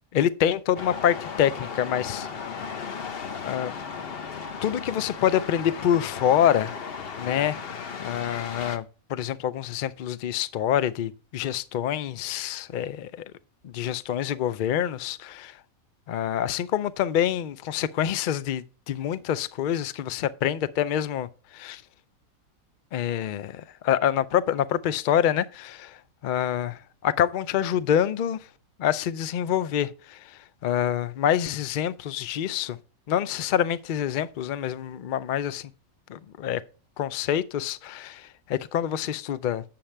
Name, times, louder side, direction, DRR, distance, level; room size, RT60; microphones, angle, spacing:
voice 1, 0.1-2.5 3.4-3.7 4.6-6.7 7.2-8.8 9.1-13.2 13.6-15.6 16.1-21.3 21.5-21.8 22.9-26.0 26.2-28.4 28.8-32.8 33.1-35.7 36.1-36.6 37.0-39.6, left 10 dB, 75° left, 0.4 m, -26 dB
sound 1, 0.8-8.8, left 6 dB, 45° left, 1.0 m, -36 dB
8.6 x 7.5 x 3.3 m
omnidirectional pair, 1.5 m